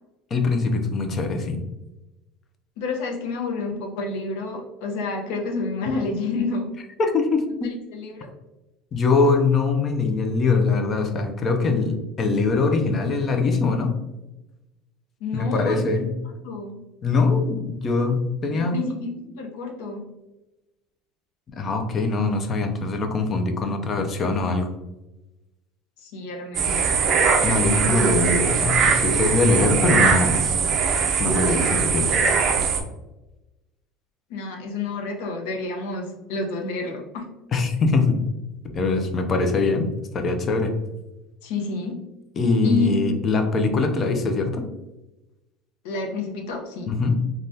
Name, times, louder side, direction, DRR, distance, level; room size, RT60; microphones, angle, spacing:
voice 1, 0.3-1.6 7.0-7.7 8.9-13.9 15.3-16.1 17.0-18.8 21.6-24.7 27.4-30.4 31.2-32.1 37.5-38.2 38.7-39.9 40.1-40.7 42.4-44.6 46.9-47.2, left 3 dB, 30° left, 6 dB, 0.4 m, -22 dB
voice 2, 2.8-6.7 7.9-8.3 15.2-16.0 16.4-16.7 18.5-20.0 26.0-26.9 34.3-37.2 41.4-42.0 42.6-42.9 45.8-46.9, left 3 dB, 80° left, 2 dB, 0.7 m, -29 dB
sound 1, 26.5-32.8, right 5 dB, 40° right, 0.4 m, -21 dB
3.3 x 2.3 x 2.6 m, 1.0 s
cardioid pair, 150°, 0 cm